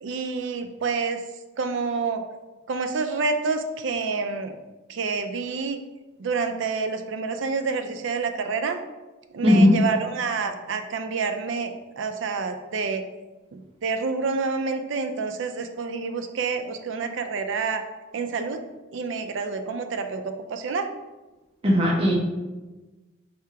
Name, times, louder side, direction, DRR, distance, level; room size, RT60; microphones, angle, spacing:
voice 1, 0.0-1.2 1.6-2.2 2.7-4.6 4.9-5.8 6.2-8.8 9.3-13.0 13.5-17.8 18.1-18.6 18.9-20.9, right 4 dB, 70° right, 7 dB, 0.4 m, -28 dB
voice 2, 9.4-9.8 21.6-22.1, left 1 dB, 30° right, -2 dB, 0.6 m, -17 dB
3.4 x 2.8 x 4.6 m, 1.2 s
head